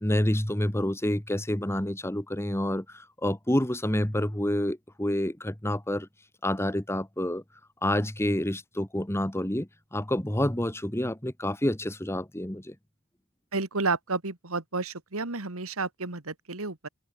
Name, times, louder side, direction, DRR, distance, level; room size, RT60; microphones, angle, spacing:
voice 1, 0.0-6.1 6.4-7.4 7.8-12.7, left 1 dB, 10° left, 1.5 m, -28 dB
voice 2, 13.5-16.9, right 3 dB, 75° right, 2.2 m, -31 dB
open air
head